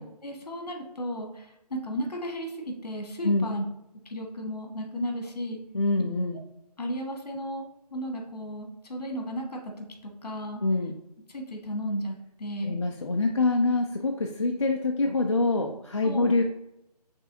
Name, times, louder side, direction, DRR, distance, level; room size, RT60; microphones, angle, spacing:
voice 1, 0.0-3.6 4.0-5.6 6.8-7.7 7.9-10.6 11.3-12.8 16.0-16.3, equal, 70° left, 2 dB, 1.5 m, -34 dB
voice 2, 5.7-6.4 10.6-10.9 12.6-16.4, left 2 dB, 45° left, 2 dB, 0.4 m, -25 dB
6.0 x 3.3 x 2.7 m, 0.85 s
hypercardioid pair, 175°, 21 cm